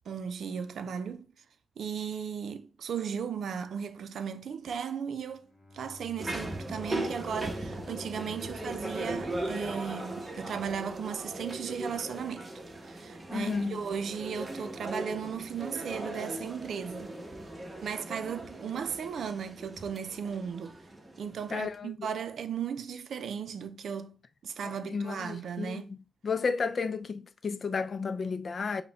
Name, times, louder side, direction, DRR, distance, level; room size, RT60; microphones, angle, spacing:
voice 1, 0.1-1.3 1.8-5.5 5.7-12.5 12.8-17.1 17.8-20.8 21.2-24.2 24.4-25.9, right 7 dB, 80° right, 0.5 m, -36 dB
Bowed string instrument, 5.2-10.4, left 2 dB, 25° left, 0.9 m, -51 dB
sound 1, 6.2-21.7, right 1 dB, 25° right, 0.9 m, -38 dB
voice 2, 13.3-13.8 21.5-22.1 24.6-26.0 26.2-28.8, left 5 dB, 50° left, 0.4 m, -33 dB
5.4 x 2.2 x 4.0 m
cardioid pair, 95°, 0 cm